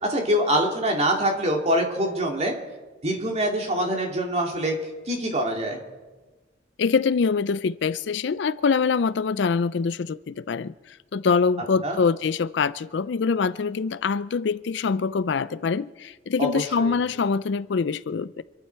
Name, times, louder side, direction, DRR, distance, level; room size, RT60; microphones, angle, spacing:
voice 1, 0.0-2.5 3.0-4.8 5.1-5.8 11.8-12.0 16.4-17.0, equal, 35° right, 1 dB, 2.5 m, -24 dB
voice 2, 6.8-18.4, left 5 dB, 65° left, 16 dB, 0.4 m, -24 dB
26.5 x 11.5 x 4.6 m, 1.2 s
head